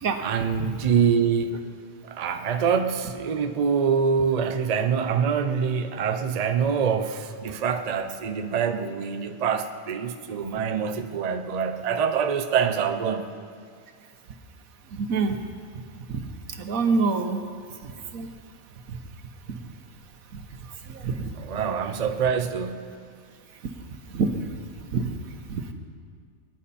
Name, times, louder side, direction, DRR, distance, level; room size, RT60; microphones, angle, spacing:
voice 1, 0.2-1.6 2.1-13.3 21.3-22.9, right 6 dB, 40° right, 0.6 m, -25 dB
voice 2, 14.9-15.4 16.1-16.3 16.6-17.4 18.1-18.3 20.3-20.4 20.9-21.3 24.1-24.3 25.0-25.1 25.5-25.6, right 4 dB, 90° right, 1.5 m, -25 dB
23.0 x 10.5 x 4.2 m
omnidirectional pair, 1.4 m